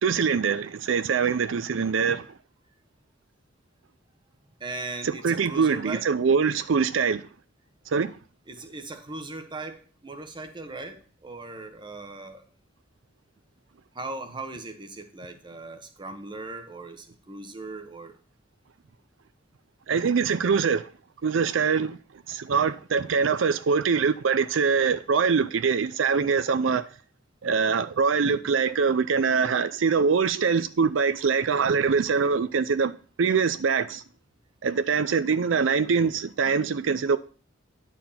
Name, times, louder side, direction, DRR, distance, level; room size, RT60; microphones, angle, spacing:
voice 1, 0.0-2.3 5.2-7.2 7.9-8.1 19.9-20.8 21.2-22.0 22.3-26.8 27.4-32.9 33.2-34.0 34.6-37.2, right 5 dB, 80° right, 0.5 m, -23 dB
voice 2, 4.6-6.0 8.5-12.4 13.9-18.1 32.5-32.6, right 3 dB, 25° right, 1.1 m, -38 dB
10.0 x 4.6 x 5.6 m
head